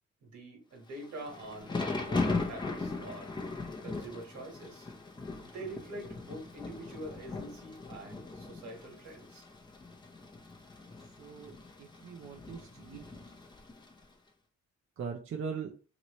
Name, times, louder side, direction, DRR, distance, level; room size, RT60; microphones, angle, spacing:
voice 1, 0.2-4.9 5.4-9.4, right 1 dB, 70° right, 1.5 m, -45 dB
Thunder / Rain, 1.0-14.0, left 3 dB, 15° left, 0.6 m, -39 dB
voice 2, 11.2-11.5 11.8-13.0 15.0-15.8, right 6 dB, 45° right, 0.5 m, -40 dB
3.0 x 2.9 x 3.0 m
cardioid pair, 90°, 30 cm